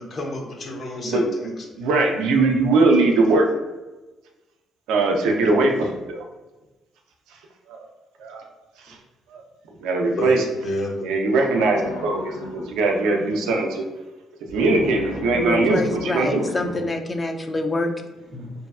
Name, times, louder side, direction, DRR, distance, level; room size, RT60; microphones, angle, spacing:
voice 1, 0.0-1.8 10.2-11.1 18.3-18.5, left 1 dB, 50° left, 0 dB, 0.7 m, -30 dB
voice 2, 1.8-3.5 4.9-6.2 7.7-7.8 8.2-8.4 8.9-9.0 9.3-9.4 9.8-10.4 11.0-13.8 14.5-16.4, right 3 dB, 75° right, 2 dB, 0.4 m, -20 dB
sound 1, 11.3-12.7 14.5-16.8, left 1 dB, 90° left, 0.5 m, -35 dB
voice 3, 15.3-17.9, left 2 dB, 30° left, 5 dB, 0.4 m, -25 dB
2.6 x 2.2 x 2.3 m, 1.1 s
hypercardioid pair, 50°, 0 cm